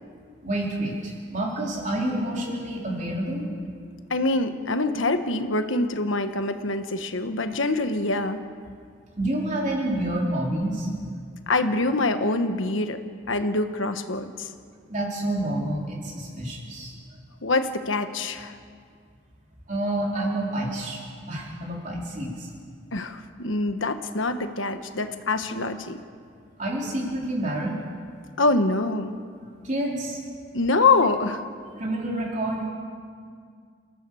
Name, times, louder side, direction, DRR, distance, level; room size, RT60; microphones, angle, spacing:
voice 1, 0.4-3.5 9.2-10.9 14.9-17.0 19.7-22.5 26.6-27.8 29.6-30.2 31.8-32.7, right 1 dB, 40° right, -3 dB, 4.2 m, -28 dB
voice 2, 4.1-8.4 11.5-13.0 13.3-14.5 17.4-18.6 22.9-26.0 28.4-29.1 30.5-31.4, left 3 dB, 85° left, 8 dB, 1.3 m, -25 dB
29.0 x 14.5 x 7.0 m, 2.1 s
head